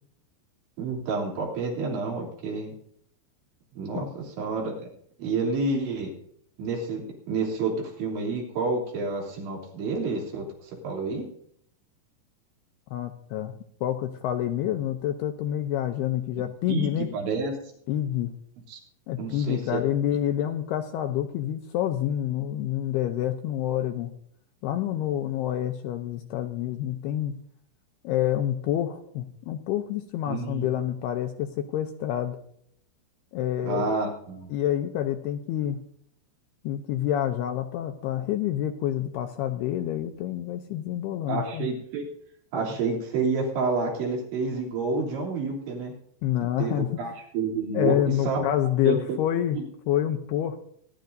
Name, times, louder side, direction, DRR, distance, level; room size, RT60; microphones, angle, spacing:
voice 1, 0.8-2.8 3.8-4.7 5.2-6.1 6.6-10.5 10.8-11.2 16.7-17.5 18.7-18.8 19.2-19.8 30.3-30.7 33.6-34.5 41.3-42.1 42.5-45.9 46.6-48.4 48.9-49.2 49.5-49.6, right 4 dB, 80° right, -2 dB, 5.5 m, -29 dB
voice 2, 12.9-13.5 13.8-17.1 17.9-18.3 19.1-24.1 24.6-27.3 28.0-32.4 33.3-34.0 34.5-35.8 36.6-41.7 46.2-47.0 47.7-49.6 49.9-50.6, left 11 dB, 80° left, 6 dB, 2.4 m, -28 dB
26.0 x 11.5 x 2.7 m, 0.67 s
omnidirectional pair, 5.2 m